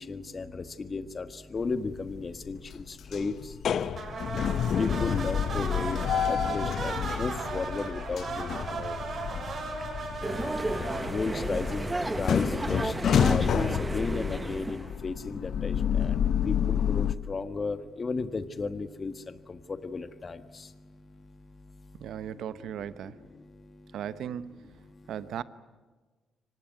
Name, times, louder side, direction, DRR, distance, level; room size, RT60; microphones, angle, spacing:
voice 1, 0.0-3.3 4.8-6.0 6.3-8.5 8.8-9.0 10.7-11.9 12.1-12.9 13.3-13.5 13.8-16.1 16.5-19.1 19.5-20.4, left 4 dB, 35° left, 1.5 m, -34 dB
sound 1, 1.6-2.1 2.5-17.1, left 8 dB, 60° left, 0.9 m, -29 dB
sound 2, 3.9-12.4, right 4 dB, 50° right, 6.8 m, -37 dB
sound 3, 10.2-14.9, right 2 dB, 15° right, 1.2 m, -33 dB
voice 2, 22.0-23.2 23.9-24.6 25.1-25.4, right 9 dB, 75° right, 1.0 m, -37 dB
25.0 x 19.0 x 9.5 m
cardioid pair, 90°, 0 cm